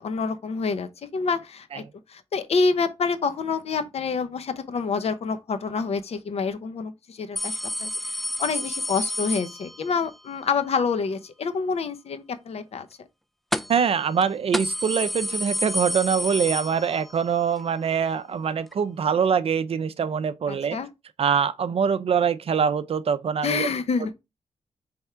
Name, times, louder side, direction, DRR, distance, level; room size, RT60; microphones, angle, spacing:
voice 1, 0.0-12.9 20.5-20.9 23.4-24.1, left 5 dB, 60° left, 0.7 m, -27 dB
sound 1, 7.4-10.1 13.5-13.9 14.2-14.3 14.5-17.3 17.6-17.7 18.7-18.8, left 1 dB, ahead, 0.3 m, -30 dB
voice 2, 13.7-20.8 21.2-23.7, right 7 dB, 55° right, 0.5 m, -24 dB
3.5 x 3.5 x 4.4 m
cardioid pair, 80°, 12 cm